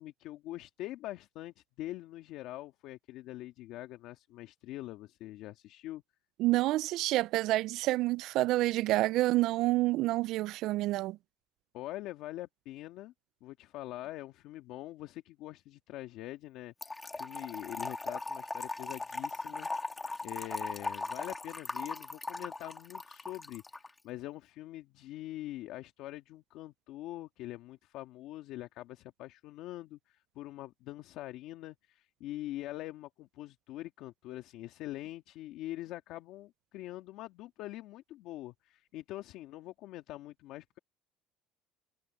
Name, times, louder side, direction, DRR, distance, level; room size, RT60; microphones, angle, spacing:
voice 1, 0.0-6.0 11.7-13.1 13.4-40.8, left 15 dB, 70° left, 1.7 m, -44 dB
voice 2, 6.4-11.2, right 17 dB, 65° right, 0.3 m, -28 dB
Trickle dribble / Fill (with liquid), 16.8-23.9, left 3 dB, 15° left, 2.1 m, -39 dB
cardioid pair, 110°, 0 cm